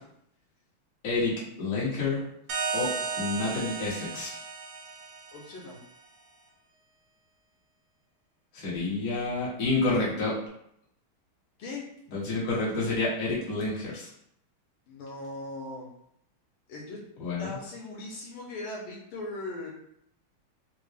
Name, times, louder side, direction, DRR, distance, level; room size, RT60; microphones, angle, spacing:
voice 1, 1.0-2.2 2.7-4.3 8.5-10.4 12.1-14.1 17.2-17.5, left 3 dB, 45° left, -7 dB, 1.4 m, -29 dB
sound 1, 2.5-5.9, right 5 dB, 75° right, 1.2 m, -34 dB
voice 2, 5.3-5.8 11.6-11.8 14.9-15.9 16.7-17.0 17.4-19.7, left 2 dB, 80° left, -3 dB, 1.6 m, -39 dB
4.4 x 2.0 x 3.3 m, 0.73 s
omnidirectional pair, 2.3 m